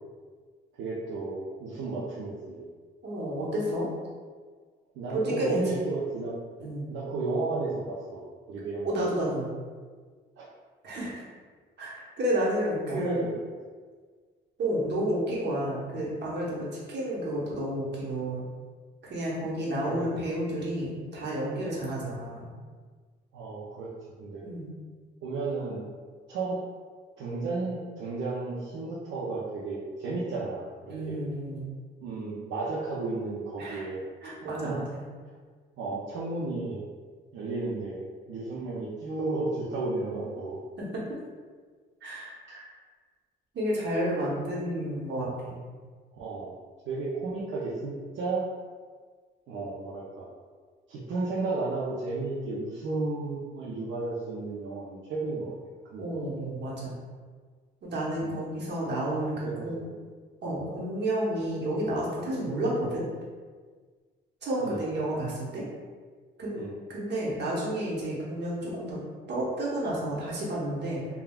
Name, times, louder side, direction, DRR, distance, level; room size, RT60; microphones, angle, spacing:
voice 1, 0.8-2.7 4.9-6.3 6.9-8.9 10.4-10.5 12.9-13.5 19.8-20.1 23.3-23.9 24.2-24.4 25.2-25.9 26.3-26.6 27.2-31.2 32.0-34.0 34.4-34.8 35.8-36.8 37.3-40.6 46.1-46.5 46.9-48.4 49.5-50.3 50.9-55.5 55.9-56.0 58.2-58.4 59.4-60.0 64.6-64.8 66.5-66.8, right 3 dB, 80° right, -7 dB, 0.6 m, -33 dB
voice 2, 3.0-3.9 5.1-5.8 6.6-6.9 8.8-9.5 10.8-11.2 11.8-13.2 14.6-18.4 19.0-22.5 24.4-24.7 30.9-31.7 33.6-33.9 34.2-35.0 40.8-41.2 42.0-42.7 43.5-45.6 56.0-57.0 57.8-59.8 60.4-63.0 64.4-65.6 66.4-66.6 66.9-69.0 69.3-71.0, right 1 dB, 60° right, -5 dB, 1.0 m, -31 dB
3.4 x 2.3 x 2.3 m, 1.5 s
cardioid pair, 90°, 20 cm